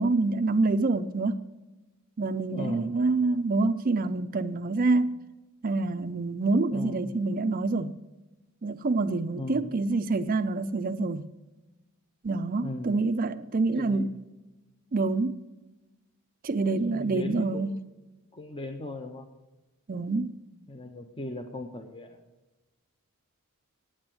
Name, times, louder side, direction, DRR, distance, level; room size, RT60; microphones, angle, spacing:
voice 1, 0.0-1.4 2.2-5.2 5.6-7.9 8.6-11.3 12.2-14.1 14.9-15.4 16.4-17.7 19.9-20.3, right 3 dB, 40° right, 0.4 m, -26 dB
voice 2, 2.5-3.0 6.7-7.1 9.4-9.8 12.6-12.9 13.8-14.1 16.8-17.8 18.3-19.3 20.7-22.2, left 1 dB, 25° left, 0.7 m, -37 dB
8.8 x 8.7 x 7.5 m
head